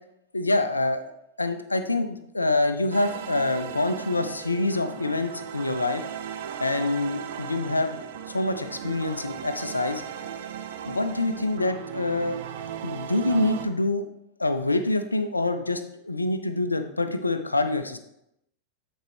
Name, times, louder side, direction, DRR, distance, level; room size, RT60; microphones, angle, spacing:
voice 1, 0.3-1.1 1.4-6.0 6.6-7.9 8.3-10.0 10.9-12.4 12.8-14.1 14.4-18.0, left 2 dB, 80° left, 9 dB, 0.5 m, -26 dB
sound 1, 2.9-13.7, right 8 dB, 55° right, 0.5 m, -37 dB
9.0 x 4.4 x 3.4 m, 0.80 s
figure-of-eight pair, 90°, 0 cm